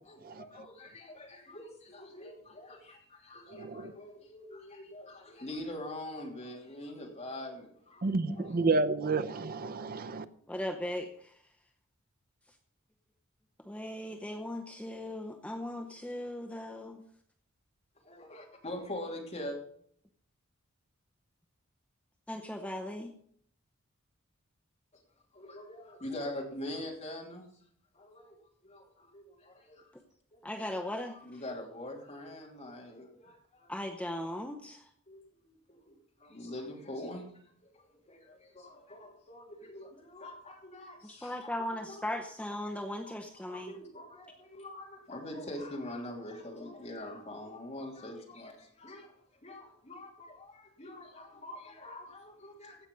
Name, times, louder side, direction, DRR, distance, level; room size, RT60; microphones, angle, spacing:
voice 1, 0.0-8.1 8.3-8.6 18.0-19.6 24.9-25.0 25.3-27.5 27.9-28.4 28.6-29.9 30.3-30.4 31.2-33.7 35.1-37.3 37.6-37.7 38.0-42.1 43.0-43.1 43.5-52.9, left 1 dB, 35° left, 0 dB, 2.9 m, -44 dB
voice 2, 3.5-3.9 8.0-10.2, right 3 dB, 45° right, 12 dB, 0.6 m, -30 dB
voice 3, 10.5-11.4 12.5-12.6 13.6-17.0 22.3-23.1 30.4-31.4 33.7-34.9 41.0-43.8, left 1 dB, 5° left, 3 dB, 0.7 m, -38 dB
16.0 x 5.9 x 5.3 m, 0.63 s
head